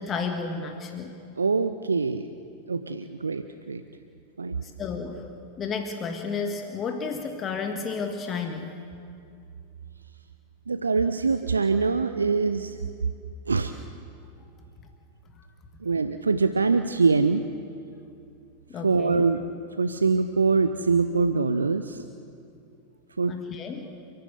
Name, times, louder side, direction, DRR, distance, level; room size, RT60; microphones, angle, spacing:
voice 1, 0.0-1.2 4.6-5.3 5.6-8.7 18.7-19.2 23.2-23.9, left 5 dB, 25° left, 4 dB, 1.6 m, -32 dB
voice 2, 1.4-2.3 2.7-3.8 4.4-4.6 10.7-12.8 13.5-13.7 15.8-17.4 18.8-19.4 19.8-22.0 23.2-23.3, right 4 dB, 75° right, 10 dB, 0.7 m, -24 dB
29.5 x 11.5 x 8.1 m, 2.5 s
figure-of-eight pair, 90°, 0 cm